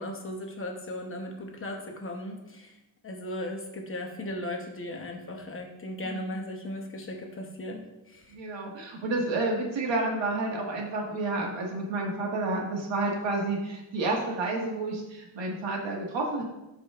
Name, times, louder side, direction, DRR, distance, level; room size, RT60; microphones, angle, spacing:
voice 1, 0.0-2.7 3.0-7.8 8.1-8.3, left 1 dB, 25° left, 1 dB, 0.9 m, -37 dB
voice 2, 6.0-6.4 8.3-16.4, right 2 dB, 70° right, -1 dB, 1.8 m, -30 dB
13.0 x 5.1 x 2.5 m, 0.96 s
wide cardioid pair, 175°, 47 cm